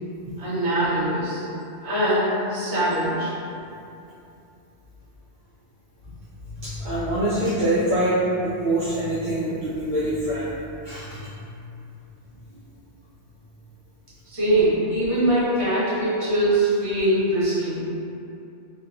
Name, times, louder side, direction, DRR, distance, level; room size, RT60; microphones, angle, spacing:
voice 1, 0.4-1.5 1.8-3.3 14.3-17.8, right 1 dB, 35° right, -11 dB, 0.8 m, -22 dB
voice 2, 6.4-10.5 10.8-11.3, right 1 dB, 60° right, -12 dB, 0.5 m, -25 dB
2.9 x 2.1 x 2.5 m, 2.7 s
omnidirectional pair, 1.3 m